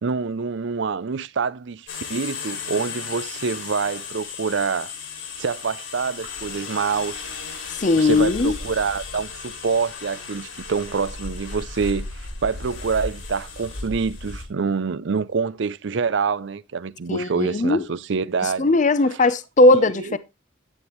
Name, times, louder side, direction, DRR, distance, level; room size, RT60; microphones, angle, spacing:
voice 1, 0.0-4.9 5.4-7.2 7.9-18.7 19.1-19.2 19.7-20.2, right 5 dB, 60° right, 0.5 m, -26 dB
sound 1, 1.9-14.4, left 4 dB, 65° left, 2.9 m, -35 dB
voice 2, 7.8-8.5 17.1-17.8 18.6-20.2, left 2 dB, 40° left, 0.6 m, -18 dB
9.8 x 9.6 x 3.0 m
head